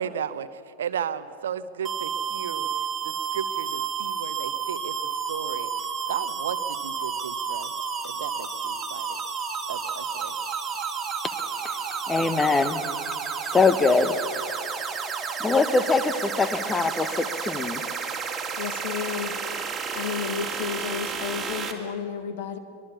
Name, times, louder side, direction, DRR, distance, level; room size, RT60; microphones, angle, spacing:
voice 1, 0.0-2.7 3.0-5.0 5.3-7.7 8.0-9.1 9.7-10.4, right 8 dB, 65° right, 14 dB, 0.9 m, -34 dB
sound 1, 1.8-21.7, right 6 dB, 15° right, 2.5 m, -31 dB
voice 2, 12.1-12.8 13.5-14.2 15.4-17.8, left 4 dB, 15° left, 12 dB, 1.3 m, -22 dB
voice 3, 18.6-19.3 19.9-22.6, left 7 dB, 55° left, 9 dB, 1.8 m, -32 dB
24.0 x 21.0 x 7.0 m, 2.4 s
figure-of-eight pair, 90°, 0 cm